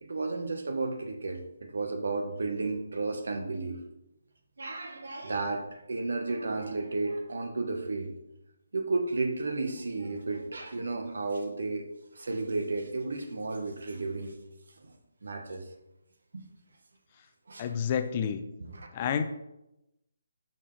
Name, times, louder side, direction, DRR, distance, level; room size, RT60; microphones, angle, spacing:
voice 1, 0.0-3.8 4.6-8.1 8.7-11.9 12.1-14.3 14.8-14.9 15.2-15.6 16.3-16.5 17.5-17.7 18.6-18.9, right 3 dB, 65° right, 5 dB, 1.2 m, -33 dB
voice 2, 17.6-18.4 18.9-19.2, left 8 dB, 30° left, 8 dB, 0.6 m, -29 dB
12.0 x 4.5 x 3.3 m, 0.89 s
figure-of-eight pair, 145°, 0 cm